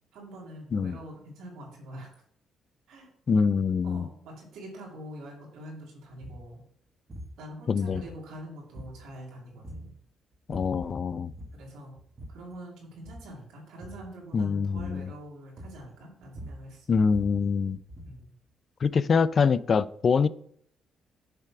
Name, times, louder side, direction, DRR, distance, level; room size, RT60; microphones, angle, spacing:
voice 1, 0.1-2.1 2.9-3.1 3.8-6.6 7.4-9.9 11.5-11.9 12.3-16.9 18.0-18.3, right 1 dB, 85° right, -2 dB, 2.4 m, -45 dB
voice 2, 3.3-4.1 7.7-8.0 10.5-11.3 14.3-15.1 16.9-17.8 18.8-20.3, left 5 dB, 45° left, 17 dB, 0.3 m, -24 dB
sound 1, 6.2-6.5 7.1-7.4 7.9-8.4 8.7-9.2 9.6-9.9 10.3-10.9 11.3-11.7 12.0-12.5 12.9-13.3 13.8-14.1 14.8-15.1 15.6-15.9 16.2-18.3, right 1 dB, 30° right, 1.5 m, -44 dB
6.7 x 3.3 x 5.8 m, 0.63 s
cardioid pair, 90°, 0 cm